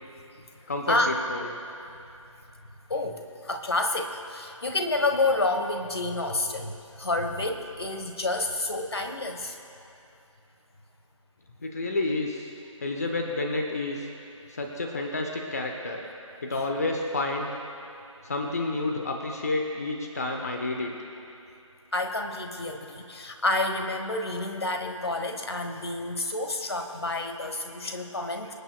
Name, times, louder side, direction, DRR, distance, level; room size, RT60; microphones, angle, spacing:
voice 1, 0.7-1.4 11.6-12.5 12.8-14.1 14.5-16.0 16.4-17.5 18.2-20.9, left 2 dB, 30° left, 2 dB, 0.9 m, -30 dB
voice 2, 2.9-9.6 21.9-28.5, left 2 dB, 50° left, 5 dB, 1.3 m, -29 dB
26.5 x 8.9 x 2.3 m, 2.8 s
figure-of-eight pair, 160°, 17 cm